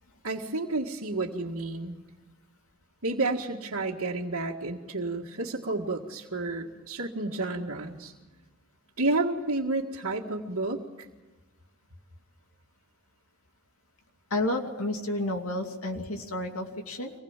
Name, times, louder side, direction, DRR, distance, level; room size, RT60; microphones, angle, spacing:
voice 1, 0.2-2.0 3.0-8.1 9.0-11.1, right 2 dB, 70° right, -4 dB, 1.9 m, -31 dB
voice 2, 14.3-17.1, left 1 dB, 75° left, 3 dB, 2.7 m, -31 dB
25.0 x 20.0 x 7.4 m, 1.1 s
head